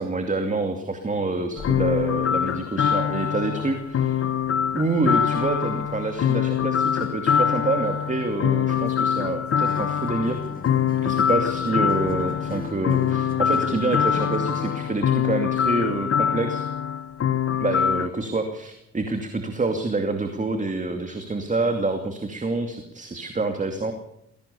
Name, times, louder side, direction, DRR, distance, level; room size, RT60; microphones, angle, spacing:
voice 1, 0.0-4.2 4.7-10.4 11.0-16.6 17.6-23.9, right 3 dB, 25° right, 6 dB, 2.6 m, -27 dB
sound 1, 1.6-18.1, left 8 dB, 50° left, 1.2 m, -24 dB
Acoustic guitar, 9.6-15.0, left 3 dB, 30° left, 2.9 m, -38 dB
21.0 x 17.5 x 7.0 m, 0.78 s
cardioid pair, 90°, 30 cm